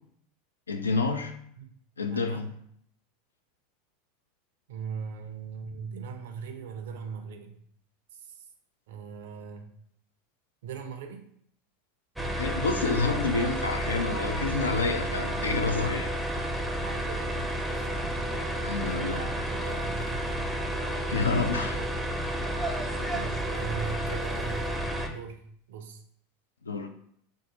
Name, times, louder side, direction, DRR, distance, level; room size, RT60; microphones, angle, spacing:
voice 1, 0.7-1.3 2.0-2.5 12.4-16.1 18.6-19.2 21.1-21.8 26.6-26.9, left 4 dB, 80° left, 7 dB, 0.3 m, -28 dB
voice 2, 1.6-2.5 4.7-7.6 8.2-8.5 8.9-9.8 10.6-11.3 14.7-14.9 15.6-16.0 16.8-17.9 18.8-20.3 21.2-21.4 23.1-26.0, right 6 dB, 65° right, 5 dB, 0.4 m, -40 dB
sound 1, 12.2-25.1, equal, ahead, 0.5 m, -31 dB
2.7 x 2.3 x 3.9 m, 0.67 s
figure-of-eight pair, 80°, 0 cm